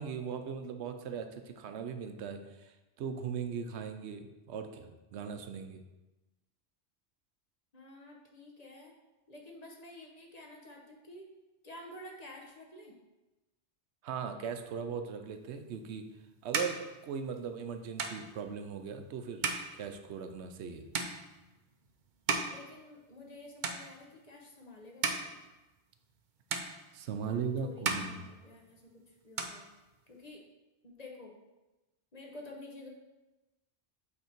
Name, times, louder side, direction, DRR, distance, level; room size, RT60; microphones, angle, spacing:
voice 1, 0.0-5.8 14.0-16.0 16.4-19.5 19.7-20.9 26.9-28.3, right 6 dB, 85° right, 7 dB, 0.9 m, -39 dB
voice 2, 7.7-8.9 9.3-11.2 11.6-12.9 22.4-25.4 27.2-29.7 30.1-30.4 30.8-31.3 32.1-32.9, left 1 dB, 40° left, 0 dB, 1.0 m, -50 dB
sound 1, 15.7-23.3 23.6-24.3 24.7-26.2 26.5-27.4 27.7-28.9 29.2-30.3, right 4 dB, 50° right, 0.7 m, -38 dB
8.0 x 3.6 x 4.4 m, 1.1 s
omnidirectional pair, 1.1 m